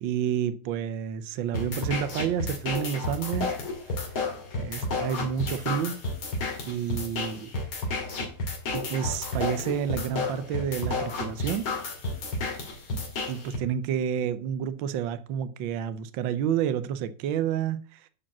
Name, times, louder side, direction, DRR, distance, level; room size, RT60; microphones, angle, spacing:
voice 1, 0.0-3.6 3.9-4.2 4.6-6.0 6.7-7.5 8.7-11.7 13.3-18.1, right 9 dB, 75° right, 1.4 m, -30 dB
sound 1, 1.5-13.6, left 2 dB, 85° left, 3.2 m, -31 dB
12.0 x 4.7 x 7.2 m
omnidirectional pair, 2.2 m